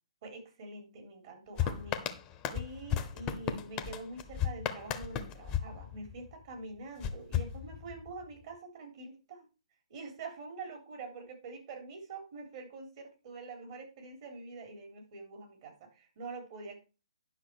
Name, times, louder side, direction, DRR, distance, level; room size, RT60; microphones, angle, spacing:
voice 1, 0.2-2.1 2.5-9.5 9.9-16.8, right 3 dB, 45° right, 3 dB, 3.6 m, -45 dB
sound 1, 1.6-6.4 7.0-8.2, left 9 dB, 20° left, 1.0 m, -35 dB
10.5 x 5.9 x 4.6 m, 0.31 s
hypercardioid pair, 135°, 4 cm